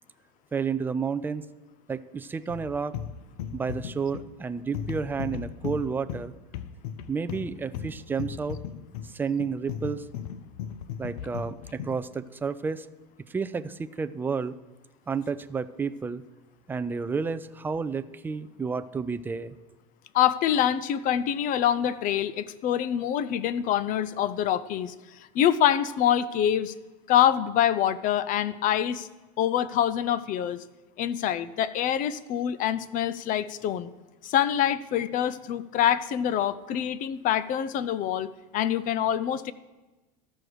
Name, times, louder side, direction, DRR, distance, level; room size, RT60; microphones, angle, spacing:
voice 1, 0.5-1.5 1.9-2.9 3.5-6.3 7.1-8.6 9.0-10.1 11.0-12.9 13.3-14.5 15.1-16.2 16.7-19.6, right 5 dB, 10° right, 11 dB, 0.3 m, -31 dB
sound 1, 2.5-12.1, left 8 dB, 80° left, 0.6 m, -37 dB
voice 2, 20.1-24.9 25.3-26.7 27.1-29.1 29.4-30.6 31.0-33.9 34.2-39.5, left 10 dB, 45° left, 16 dB, 0.5 m, -25 dB
13.5 x 6.3 x 4.9 m, 1.1 s
supercardioid pair, 115°, 20 cm